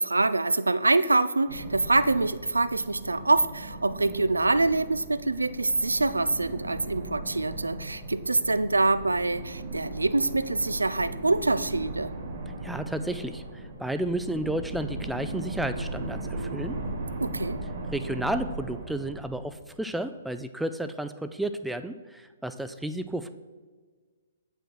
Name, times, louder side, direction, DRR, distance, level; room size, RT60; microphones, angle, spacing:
voice 1, 0.0-12.1 17.2-17.6, right 2 dB, 80° right, 14 dB, 0.4 m, -25 dB
sound 1, 1.5-19.9, right 2 dB, 45° right, 2.0 m, -38 dB
voice 2, 12.6-16.8 17.9-23.3, right 1 dB, 5° right, 10 dB, 0.4 m, -32 dB
8.5 x 5.6 x 4.5 m, 1.4 s
figure-of-eight pair, 120°, 0 cm